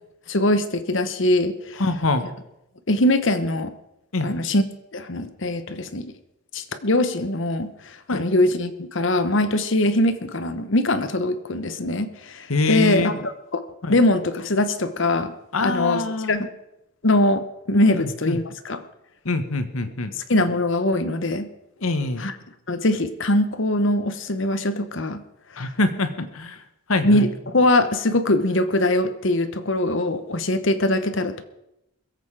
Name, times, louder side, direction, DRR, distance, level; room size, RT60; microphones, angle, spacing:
voice 1, 0.3-1.8 2.9-3.7 4.2-4.6 4.9-6.1 6.5-13.6 13.9-15.3 15.6-16.0 16.3-16.5 17.0-18.8 20.3-21.5 22.2-22.3 22.7-25.2 27.0-31.4, left 1 dB, 60° left, 10 dB, 1.0 m, -22 dB
voice 2, 1.8-2.3 4.1-4.3 8.1-8.2 12.5-13.1 13.8-14.0 15.5-16.4 17.9-18.4 19.2-20.1 21.8-22.2 25.6-26.6 26.9-27.3, left 2 dB, 80° left, 10 dB, 1.4 m, -24 dB
22.0 x 8.1 x 4.8 m, 0.85 s
head